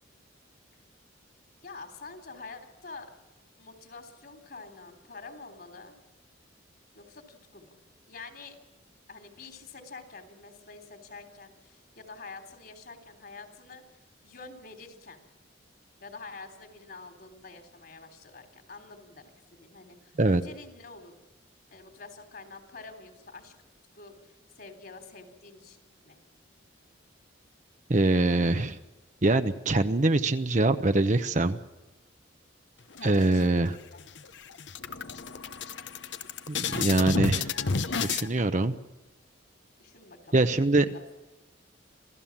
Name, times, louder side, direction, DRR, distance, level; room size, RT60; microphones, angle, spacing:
voice 1, 1.6-3.1 3.6-6.0 6.9-7.7 8.1-8.6 9.1-15.2 16.0-21.2 21.7-23.5 23.9-26.2 33.0-34.0 39.8-40.4 40.9-41.2, left 3 dB, 55° left, 7 dB, 3.5 m, -47 dB
voice 2, 27.9-28.8 29.2-31.6 33.0-33.7 36.5-37.5 38.0-38.7 40.3-40.9, right 2 dB, 40° right, 9 dB, 0.8 m, -23 dB
sound 1, 33.0-33.7 34.1-34.2 34.5-38.3, left 5 dB, 70° left, 1.0 m, -31 dB
27.0 x 16.0 x 7.3 m, 1.1 s
head